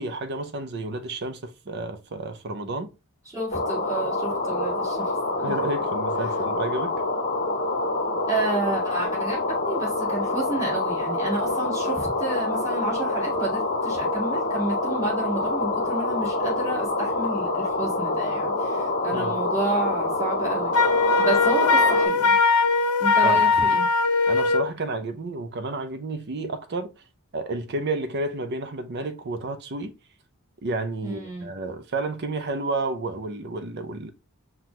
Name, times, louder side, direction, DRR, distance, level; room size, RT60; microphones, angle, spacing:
voice 1, 0.0-2.9 5.4-7.0 19.1-19.4 23.2-23.4 24.3-26.9 27.3-29.9 30.6-34.1, right 2 dB, 50° right, 0.6 m, -31 dB
voice 2, 3.3-5.1 8.3-22.4 23.0-23.9 31.0-31.5, right 3 dB, 15° right, 1.9 m, -30 dB
sound 1, 3.5-22.1, left 2 dB, 40° left, 0.8 m, -26 dB
Wind instrument woodwind instrument, 20.7-24.7, left 4 dB, 85° left, 0.7 m, -20 dB
5.8 x 2.3 x 2.9 m
head